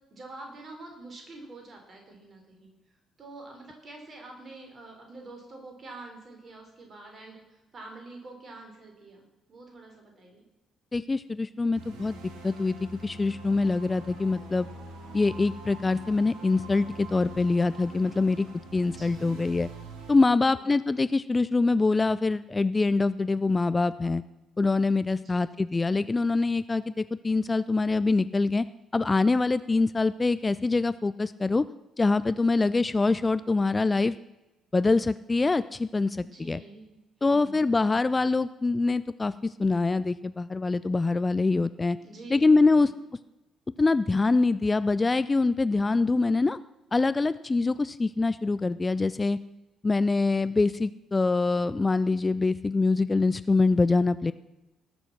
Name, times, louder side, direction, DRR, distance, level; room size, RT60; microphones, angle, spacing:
voice 1, 0.1-2.7 3.2-10.4 19.0-19.4 20.3-20.7 25.2-25.5 36.1-36.9 37.3-37.7 42.0-42.4 42.7-42.9, right 2 dB, 40° right, 2 dB, 4.2 m, -46 dB
voice 2, 10.9-12.2 12.4-12.8 13.0-14.7 15.1-18.5 18.7-19.7 20.1-24.2 24.6-28.6 28.9-31.6 32.0-34.1 34.7-36.6 37.2-42.0 42.3-42.9 43.8-46.6 46.9-49.4 49.8-54.3, left 3 dB, 25° left, 15 dB, 0.4 m, -24 dB
sound 1, 11.7-20.1, right 2 dB, 65° right, 2.0 m, -44 dB
18.5 x 6.9 x 6.0 m, 1.0 s
figure-of-eight pair, 45°, 0 cm